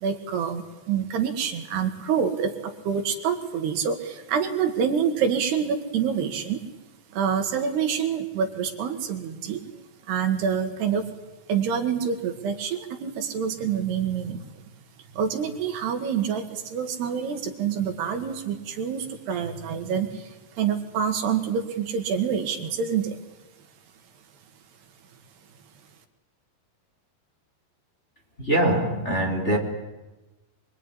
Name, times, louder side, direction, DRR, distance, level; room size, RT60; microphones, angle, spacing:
voice 1, 0.0-6.6 7.1-9.6 10.1-11.1 11.5-14.4 15.2-23.2, right 7 dB, 75° right, 6 dB, 4.0 m, -27 dB
voice 2, 28.4-29.6, right 1 dB, 15° left, 0 dB, 3.5 m, -23 dB
25.5 x 22.5 x 10.0 m, 1.1 s
omnidirectional pair, 4.8 m